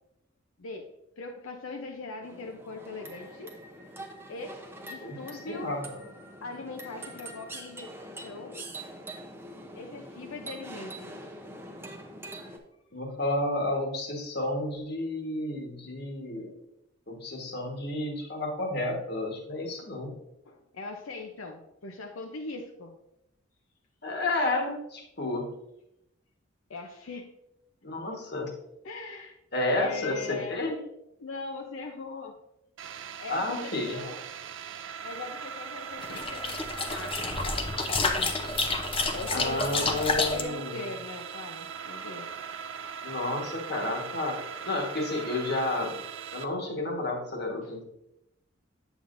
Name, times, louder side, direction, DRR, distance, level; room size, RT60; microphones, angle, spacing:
voice 1, 0.6-0.9 1.2-3.6 4.3-5.7 6.4-7.9 8.2-8.6 9.8-11.1 20.4-23.0 26.7-27.3 28.8-29.4 29.8-30.6 31.2-32.4 33.2-34.2 35.0-38.4 39.1-42.3 47.6-47.7, left 3 dB, 80° left, 2 dB, 0.6 m, -41 dB
sound 1, 2.2-12.6, right 1 dB, 10° right, 0.7 m, -44 dB
voice 2, 5.5-6.0 12.9-16.5 17.1-20.2 24.0-25.5 27.8-28.5 29.5-30.8 33.3-34.0 39.3-40.9 43.0-44.4 44.6-46.0 46.3-47.8, left 2 dB, 50° left, 1 dB, 1.4 m, -31 dB
sound 2, 32.8-46.5, right 7 dB, 65° right, 0.4 m, -40 dB
sound 3, 36.0-40.4, left 3 dB, 25° left, 0.5 m, -29 dB
8.6 x 7.0 x 2.6 m, 0.85 s
head